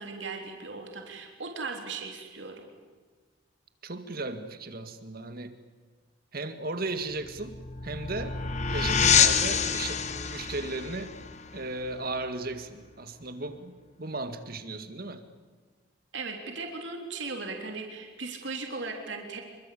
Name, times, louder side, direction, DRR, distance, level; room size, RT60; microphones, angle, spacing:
voice 1, 0.0-2.7 16.1-19.4, right 4 dB, 70° right, 3 dB, 3.4 m, -37 dB
voice 2, 3.8-5.5 6.3-8.4 8.7-11.2 11.5-15.2, right 2 dB, 50° right, 9 dB, 2.0 m, -36 dB
sound 1, 7.1-12.5, left 6 dB, 35° left, 1.3 m, -27 dB
27.0 x 24.0 x 8.5 m, 1.4 s
head